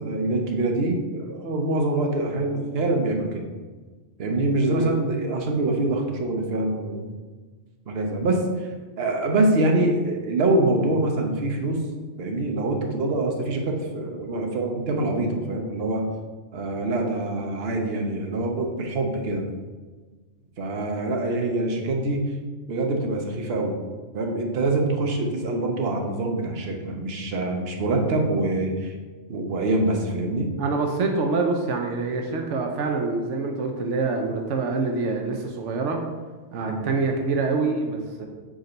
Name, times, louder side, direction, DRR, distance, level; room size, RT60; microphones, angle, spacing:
voice 1, 0.0-3.5 4.2-7.1 7.9-8.7 9.0-11.8 12.2-16.0 16.5-19.5 20.6-22.2 22.7-23.8 24.1-28.9 29.3-30.5 36.6-36.8, right 2 dB, 60° right, 2 dB, 1.1 m, -25 dB
voice 2, 4.6-4.9 30.6-36.0 36.5-38.3, right 3 dB, 85° right, 3 dB, 1.0 m, -26 dB
5.0 x 4.6 x 5.2 m, 1.4 s
omnidirectional pair, 1.2 m